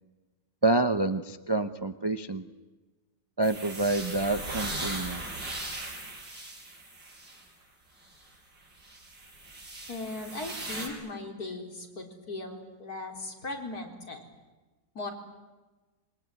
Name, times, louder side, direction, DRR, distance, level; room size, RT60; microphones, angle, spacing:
voice 1, 0.6-2.4 3.4-5.2, right 2 dB, 30° right, 10 dB, 0.5 m, -27 dB
sound 1, 3.4-7.4 8.0-8.1 8.8-10.9, right 2 dB, 85° right, 6.3 m, -38 dB
voice 2, 9.9-14.2 14.9-15.1, left 2 dB, 55° left, 2 dB, 4.5 m, -38 dB
25.5 x 23.0 x 9.3 m, 1.2 s
omnidirectional pair, 1.9 m